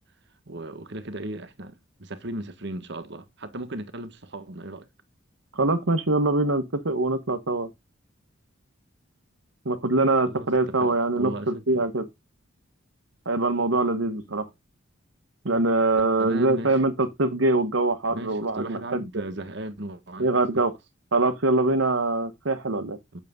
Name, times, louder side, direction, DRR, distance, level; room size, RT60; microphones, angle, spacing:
voice 1, 0.4-4.9 10.3-11.8 16.2-16.8 18.1-20.6 23.1-23.2, right 1 dB, 60° right, 1.5 m, -36 dB
voice 2, 5.5-7.7 9.6-12.0 13.2-14.5 15.4-19.2 20.2-20.7 21.1-23.0, right 2 dB, 75° right, 1.3 m, -23 dB
9.5 x 6.9 x 3.7 m
head